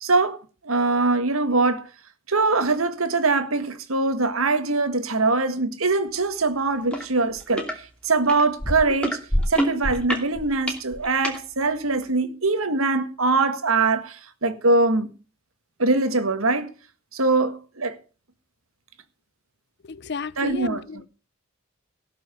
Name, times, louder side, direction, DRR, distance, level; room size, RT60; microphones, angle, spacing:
voice 1, 0.0-1.9 2.3-7.7 8.0-9.2 9.5-15.1 15.8-16.7 17.1-18.0 20.4-21.0, right 3 dB, 85° right, 1.7 m, -22 dB
sound 1, 6.9-7.0 7.4-7.7 8.3-11.4 12.1-12.2, equal, 5° left, 2.6 m, -26 dB
voice 2, 19.9-21.1, left 4 dB, 55° left, 0.6 m, -33 dB
18.0 x 6.1 x 7.0 m
head